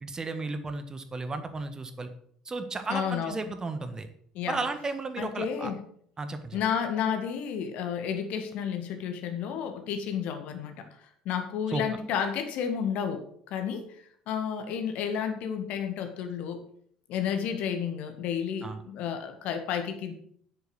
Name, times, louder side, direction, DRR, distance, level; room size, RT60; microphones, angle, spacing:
voice 1, 0.0-2.1 2.4-4.1 4.5-5.7 6.2-6.6 11.7-11.8 18.6-18.8, right 3 dB, 25° right, 9 dB, 1.4 m, -34 dB
voice 2, 2.9-3.4 4.3-4.6 5.2-5.8 6.5-10.8 11.3-16.6 17.1-20.1, left 7 dB, 55° left, 6 dB, 1.9 m, -31 dB
10.5 x 8.0 x 6.3 m, 0.63 s
figure-of-eight pair, 60°, 3 cm